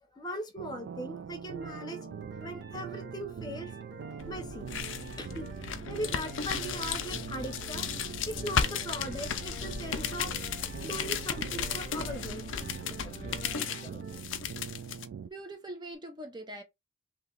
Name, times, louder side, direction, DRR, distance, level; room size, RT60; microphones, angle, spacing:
voice 1, 0.1-2.1 2.4-3.7 4.3-4.7 5.2-5.5 5.9-7.9 8.3-12.4 12.9-13.4 13.7-14.0 14.4-14.6, equal, 20° left, 0.8 m, -39 dB
sound 1, 0.6-15.3, right 7 dB, 80° right, 0.3 m, -43 dB
sound 2, 1.5-14.2, right 3 dB, 60° right, 1.2 m, -49 dB
sound 3, 4.2-15.1, left 7 dB, 85° left, 0.5 m, -35 dB
voice 2, 15.2-16.6, right 1 dB, 25° right, 0.6 m, -42 dB
3.0 x 2.8 x 3.8 m
head